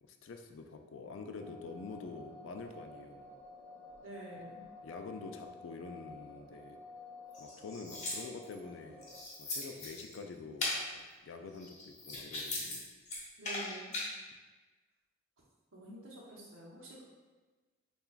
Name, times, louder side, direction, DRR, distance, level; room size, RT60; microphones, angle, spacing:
voice 1, 0.0-3.3 4.8-6.8 7.4-9.1 9.4-12.9, left 4 dB, 65° left, 5 dB, 0.4 m, -47 dB
sound 1, 1.4-9.2, left 2 dB, 15° right, 0.7 m, -52 dB
voice 2, 4.0-4.6 13.4-13.9 15.7-17.0, right 1 dB, 70° right, -4 dB, 1.0 m, -48 dB
sound 2, 7.3-8.6 9.0-10.2 10.6-10.8 11.5-12.8 13.1-14.1, left 2 dB, 35° left, 0.8 m, -39 dB
6.7 x 2.4 x 2.4 m, 1.3 s
head